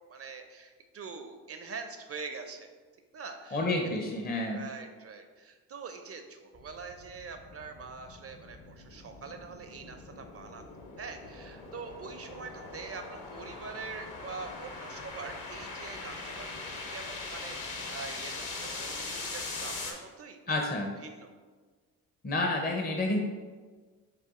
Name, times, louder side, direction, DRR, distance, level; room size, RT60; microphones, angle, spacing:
voice 1, 0.0-2.7 3.1-3.7 4.5-10.6 11.0-20.5 21.0-21.3, right 4 dB, 40° right, 6 dB, 0.5 m, -44 dB
voice 2, 3.5-4.7 20.5-20.9 22.2-23.2, left 2 dB, 25° left, 1 dB, 0.6 m, -29 dB
sound 1, 6.5-19.9, left 3 dB, 55° left, 1.0 m, -42 dB
7.6 x 2.5 x 2.4 m, 1.4 s
supercardioid pair, 60°, 38 cm